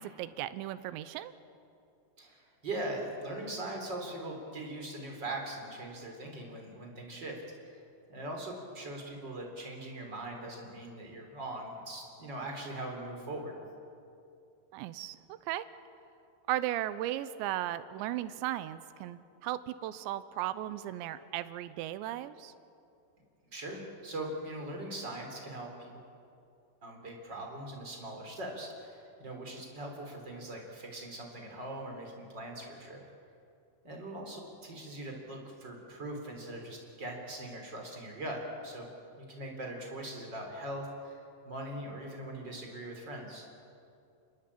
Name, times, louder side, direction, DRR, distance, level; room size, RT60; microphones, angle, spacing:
voice 1, 0.0-1.3 14.7-15.7 16.5-22.5, right 13 dB, 80° right, 13 dB, 2.9 m, -36 dB
voice 2, 2.2-7.8 8.1-13.6 23.5-25.9 26.8-33.0 33.8-38.9 39.2-43.5, right 1 dB, 25° right, 1 dB, 3.9 m, -41 dB
28.5 x 20.5 x 8.6 m, 2.6 s
omnidirectional pair, 5.6 m